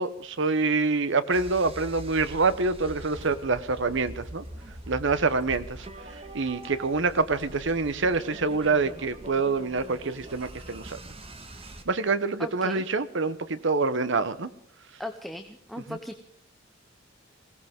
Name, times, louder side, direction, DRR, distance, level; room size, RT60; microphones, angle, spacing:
voice 1, 0.0-4.4 4.9-5.9 6.3-11.0 11.9-14.5 15.9-16.0, right 4 dB, 65° right, 13 dB, 1.0 m, -26 dB
sound 1, 1.3-11.8, right 1 dB, 30° right, 1.7 m, -43 dB
voice 2, 12.4-12.8 15.0-16.2, left 1 dB, ahead, 6 dB, 0.9 m, -37 dB
21.5 x 17.5 x 3.7 m, 0.67 s
head